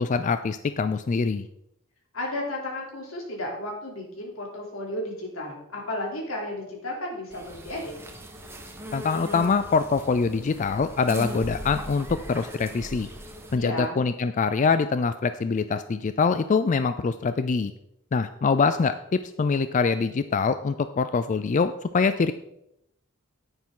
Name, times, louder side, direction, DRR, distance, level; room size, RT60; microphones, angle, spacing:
voice 1, 0.0-1.5 8.9-13.1 13.5-17.7 18.1-22.3, left 4 dB, 35° left, 11 dB, 0.4 m, -24 dB
voice 2, 2.1-7.9 13.6-14.0, left 1 dB, 85° left, -1 dB, 3.2 m, -33 dB
sound 1, 7.3-13.6, equal, 10° right, 1.2 m, -39 dB
10.5 x 9.7 x 3.8 m, 0.81 s
head